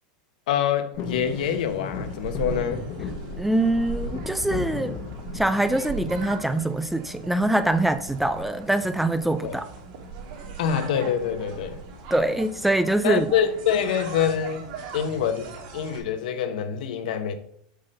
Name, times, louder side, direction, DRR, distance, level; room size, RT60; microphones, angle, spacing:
voice 1, 0.5-2.8 9.4-9.6 10.6-11.8 13.0-17.3, left 8 dB, 75° left, 1.1 m, -25 dB
sound 1, 0.9-16.0, right 4 dB, 55° right, 3.1 m, -39 dB
sound 2, 1.0-7.1 7.6-8.2 9.5-9.9 10.1-10.2 10.5-10.8 11.6-12.6 13.0-13.1, left 5 dB, 45° left, 1.2 m, -36 dB
voice 2, 3.4-5.0 5.3-9.7 12.1-13.3, right 1 dB, 5° right, 0.3 m, -24 dB
8.2 x 3.9 x 6.5 m
supercardioid pair, 160°, 4 cm